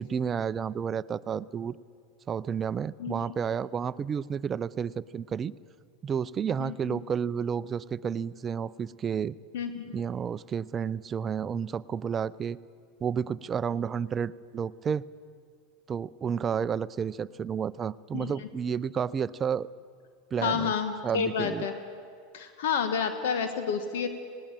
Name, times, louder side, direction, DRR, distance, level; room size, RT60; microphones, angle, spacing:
voice 1, 0.0-1.7 2.3-5.5 6.0-9.4 9.9-12.6 13.0-15.0 15.9-19.7 20.3-20.7 21.0-21.7, right 7 dB, 30° right, 17 dB, 0.5 m, -31 dB
voice 2, 6.6-7.0 9.5-9.8 18.1-18.3 20.4-21.7 22.3-24.1, left 6 dB, 75° left, 8 dB, 1.4 m, -30 dB
18.5 x 18.0 x 8.9 m, 2.2 s
hypercardioid pair, 100°, 0 cm